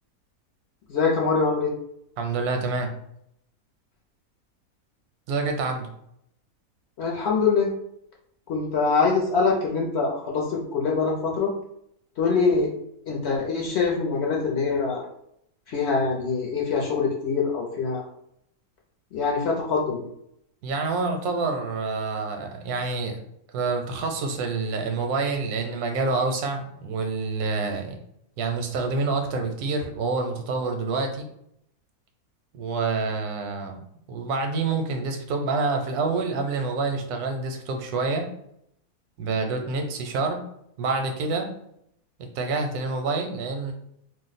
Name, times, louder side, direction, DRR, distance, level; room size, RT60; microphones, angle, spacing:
voice 1, 0.9-1.7 7.0-7.7 8.5-11.5 12.2-12.7 13.0-15.0 15.7-18.0 19.1-20.1, left 4 dB, 60° left, -2 dB, 0.7 m, -24 dB
voice 2, 2.2-2.9 5.3-5.9 20.6-23.2 23.5-28.0 28.4-31.3 32.5-33.8 34.1-38.3 39.2-40.4 40.8-41.5 42.4-43.7, right 3 dB, 85° right, 4 dB, 1.1 m, -27 dB
2.6 x 2.1 x 4.0 m, 0.75 s
omnidirectional pair, 1.6 m